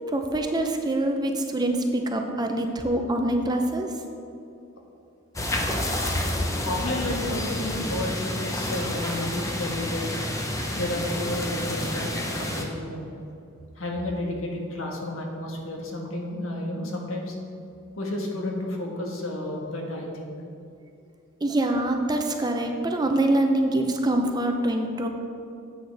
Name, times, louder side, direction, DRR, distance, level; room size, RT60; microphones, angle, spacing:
voice 1, 0.1-3.9 21.4-25.1, right 1 dB, 20° right, 4 dB, 0.6 m, -25 dB
sound 1, 5.4-12.6, left 1 dB, 15° left, 0.8 m, -29 dB
voice 2, 6.6-10.2 10.7-13.1 13.8-17.4 17.9-20.3, left 1 dB, 80° left, 0 dB, 1.5 m, -31 dB
10.5 x 8.0 x 3.4 m, 2.6 s
head